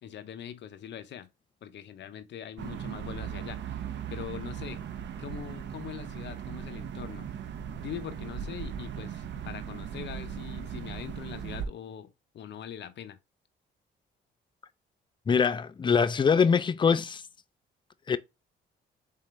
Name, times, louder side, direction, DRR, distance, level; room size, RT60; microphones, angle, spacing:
voice 1, 0.0-1.3 1.6-3.6 4.1-4.8 5.2-7.3 7.8-13.2, left 9 dB, 65° left, 0.7 m, -42 dB
sound 1, 2.6-11.7, right 8 dB, 65° right, 0.7 m, -38 dB
voice 2, 15.3-17.2 18.1-18.2, left 6 dB, 25° left, 0.4 m, -23 dB
4.1 x 3.8 x 3.1 m
cardioid pair, 90°, 20 cm